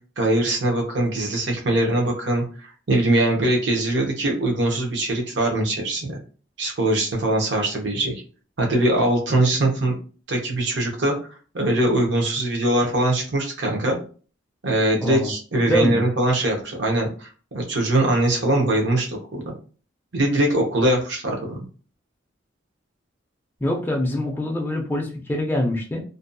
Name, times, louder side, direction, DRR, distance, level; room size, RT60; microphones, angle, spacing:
voice 1, 0.2-6.2 6.6-8.2 8.6-9.9 10.3-11.2 11.5-14.0 14.6-19.5 20.1-21.7, right 1 dB, 65° right, 1 dB, 0.7 m, -22 dB
voice 2, 15.0-15.3 15.7-16.0 23.6-26.0, left 1 dB, 10° left, 0 dB, 0.4 m, -24 dB
2.6 x 2.2 x 2.5 m, 0.39 s
head